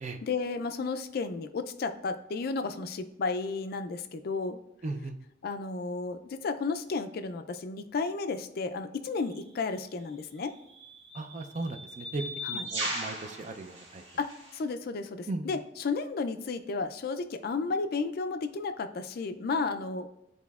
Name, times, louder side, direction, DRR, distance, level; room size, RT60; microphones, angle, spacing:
voice 1, 0.2-4.6 5.4-10.5 12.4-12.6 14.2-20.1, left 4 dB, 55° left, 9 dB, 0.4 m, -33 dB
voice 2, 4.8-5.2 11.1-12.2 12.5-14.0 15.3-15.5, right 2 dB, 40° right, 7 dB, 0.4 m, -37 dB
sound 1, 9.2-9.4 10.4-14.6, equal, 65° right, 1.4 m, -38 dB
10.5 x 4.2 x 2.4 m, 0.84 s
head